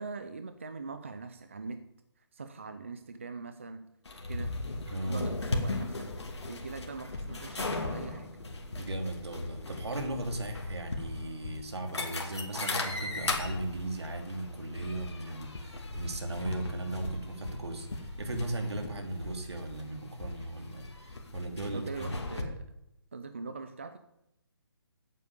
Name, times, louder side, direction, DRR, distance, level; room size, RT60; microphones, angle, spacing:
voice 1, 0.0-1.8 2.2-3.9 4.3-4.6 5.0-6.1 6.5-8.4 21.7-22.7 23.1-24.0, right 4 dB, 30° right, 9 dB, 0.4 m, -42 dB
sound 1, 4.1-22.4, left 2 dB, 90° left, 2.6 m, -38 dB
voice 2, 4.9-5.3 8.7-22.1, right 1 dB, 75° right, 5 dB, 2.6 m, -37 dB
8.7 x 8.4 x 8.2 m, 0.84 s
hypercardioid pair, 180°, 14 cm